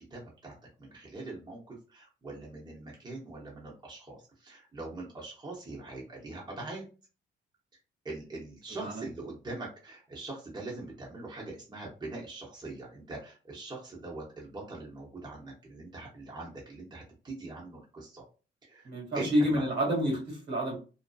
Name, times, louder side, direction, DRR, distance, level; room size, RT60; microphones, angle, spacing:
voice 1, 0.1-6.8 8.0-18.2 18.6-18.9 19.1-19.6, right 2 dB, 20° right, -3 dB, 0.9 m, -42 dB
voice 2, 18.8-20.8, equal, 60° right, -1 dB, 1.5 m, -29 dB
2.6 x 2.1 x 2.3 m, 0.34 s
cardioid pair, 90°, 20 cm